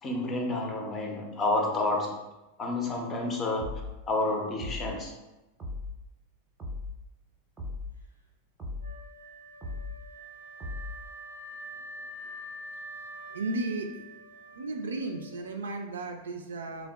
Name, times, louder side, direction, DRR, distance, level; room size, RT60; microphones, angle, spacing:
voice 1, 0.0-2.1 2.6-3.7 4.1-5.1, left 2 dB, 25° left, 1 dB, 0.5 m, -29 dB
sound 1, 3.6-4.0 4.6-5.0 5.6-6.0 6.6-7.0 7.6-8.0 8.6-9.0 9.6-10.0 10.6-11.0, left 2 dB, 20° right, 0.6 m, -37 dB
Wind instrument woodwind instrument, 8.8-15.8, right 1 dB, 90° left, 0.5 m, -45 dB
voice 2, 13.3-14.1 14.5-16.9, right 2 dB, 65° right, 4 dB, 0.3 m, -35 dB
3.4 x 2.1 x 2.2 m, 1.0 s
figure-of-eight pair, 90°, 0 cm